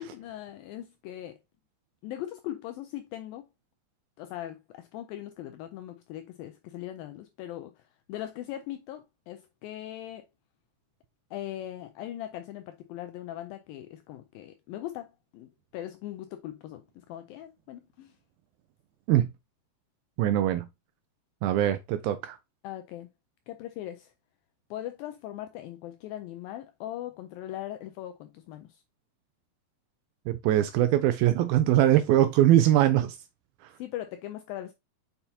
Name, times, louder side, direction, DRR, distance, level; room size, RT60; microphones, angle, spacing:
voice 1, 0.0-1.4 2.0-3.5 4.2-10.3 11.3-18.1 22.6-23.1 23.5-24.1 24.7-28.8 33.8-34.7, left 13 dB, 85° left, 2.0 m, -40 dB
voice 2, 20.2-20.7 21.4-22.4 30.3-33.2, right 12 dB, 80° right, 2.2 m, -22 dB
6.7 x 5.7 x 2.7 m
omnidirectional pair, 4.7 m